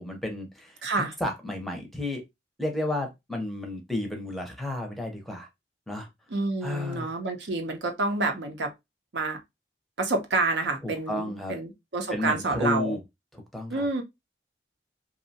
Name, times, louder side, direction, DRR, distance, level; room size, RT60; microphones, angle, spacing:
voice 1, 0.0-2.2 2.6-5.5 5.9-6.1 6.6-7.1 10.8-11.5 12.1-13.0 13.3-13.9, left 1 dB, ahead, 0.5 m, -32 dB
voice 2, 0.8-1.1 6.3-8.7 9.1-9.4 10.0-13.0 13.7-14.0, right 3 dB, 85° right, 0.7 m, -28 dB
2.7 x 2.1 x 2.7 m
head